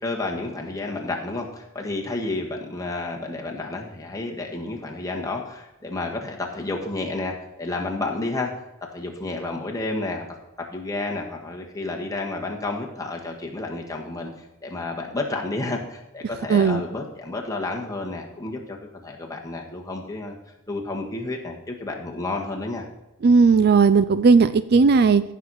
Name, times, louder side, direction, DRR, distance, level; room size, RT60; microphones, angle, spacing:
voice 1, 0.0-8.5 8.9-10.3 10.6-18.8 19.0-20.3 20.7-22.8, left 2 dB, 15° left, 0 dB, 1.6 m, -31 dB
voice 2, 16.5-16.8 23.2-25.2, right 5 dB, 50° right, 14 dB, 0.4 m, -16 dB
15.0 x 6.3 x 4.2 m, 1.0 s
head